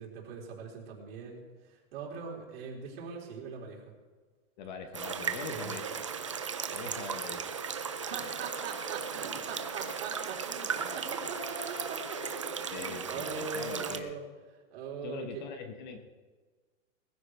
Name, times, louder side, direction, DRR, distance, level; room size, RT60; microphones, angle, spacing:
voice 1, 0.0-3.9 5.5-5.7 6.8-7.1 8.0-14.3 14.7-15.4, right 5 dB, 45° right, -2 dB, 3.9 m, -41 dB
voice 2, 4.6-5.8 6.7-7.4 12.7-14.1 15.0-16.0, left 6 dB, 35° left, 6 dB, 1.1 m, -42 dB
sound 1, 4.9-14.0, right 6 dB, 25° right, 0.3 m, -36 dB
Bowed string instrument, 9.3-12.4, left 3 dB, 75° left, 5.1 m, -52 dB
20.0 x 14.5 x 3.4 m, 1.4 s
supercardioid pair, 175°, 40 cm